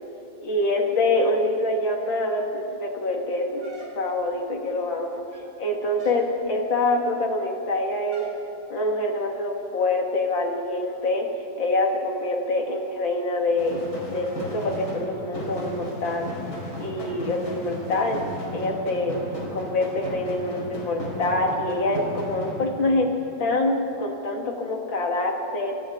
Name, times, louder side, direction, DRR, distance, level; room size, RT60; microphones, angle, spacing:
voice 1, 0.4-5.2 5.6-8.3 8.7-11.3 11.6-13.8 14.1-16.3 16.8-19.1 19.5-23.1 23.4-25.7, left 2 dB, 85° left, 1 dB, 3.1 m, -25 dB
sound 1, 3.6-4.4 5.2-5.6 6.0-6.3 8.1-8.4, right 2 dB, 60° right, 4.0 m, -45 dB
sound 2, 13.6-22.7, equal, 60° left, 5.2 m, -35 dB
27.5 x 25.0 x 4.0 m, 2.8 s
omnidirectional pair, 2.0 m